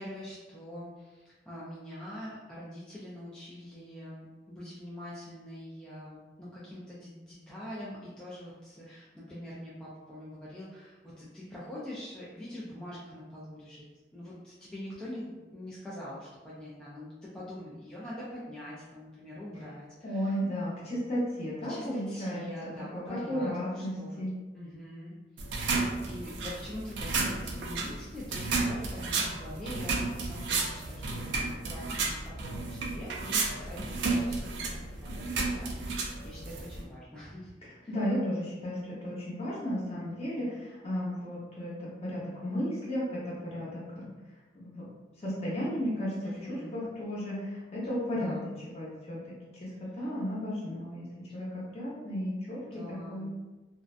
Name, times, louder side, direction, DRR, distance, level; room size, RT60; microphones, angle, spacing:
voice 1, 0.0-13.8 14.1-20.3 21.7-24.2 24.5-25.8 26.1-37.5 37.8-38.0 46.2-46.7 48.1-48.5 49.7-50.1 51.3-51.5 52.7-53.2, left 1 dB, 5° left, -9 dB, 0.3 m, -44 dB
voice 2, 20.0-22.5 22.9-24.3 37.9-44.1 44.5-44.9 45.2-51.1 51.3-53.3, equal, 35° left, -6 dB, 0.8 m, -34 dB
sound 1, 25.4-36.8, right 3 dB, 80° right, 0.4 m, -32 dB
2.5 x 2.1 x 2.4 m, 1.2 s
head